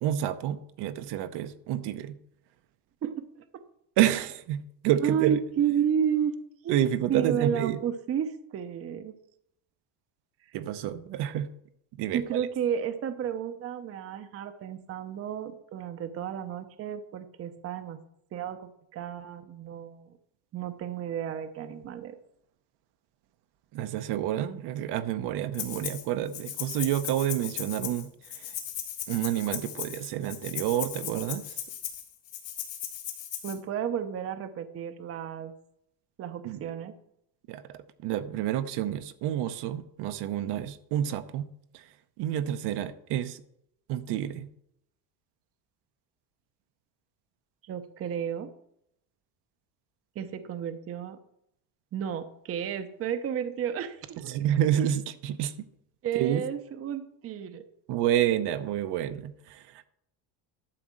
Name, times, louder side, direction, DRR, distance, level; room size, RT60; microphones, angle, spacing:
voice 1, 0.0-2.2 4.0-5.4 6.7-7.8 10.5-11.5 12.0-12.5 23.7-28.6 29.1-31.6 36.4-36.7 37.5-41.5 41.7-41.9 42.2-43.4 43.9-44.5 54.2-55.7 56.1-56.4 57.9-59.9, right 11 dB, 65° right, 10 dB, 0.8 m, -29 dB
voice 2, 5.0-6.4 6.6-6.8 7.1-9.1 12.1-18.0 18.3-20.1 20.5-22.2 33.4-35.5 36.2-36.9 47.6-48.5 50.2-51.2 51.9-54.3 56.0-57.6, right 8 dB, 35° right, 10 dB, 0.7 m, -32 dB
Rattle (instrument), 25.5-26.0 26.3-33.5, left 11 dB, 70° left, 2.9 m, -37 dB
11.5 x 4.2 x 7.5 m, 0.76 s
cardioid pair, 155°, 44 cm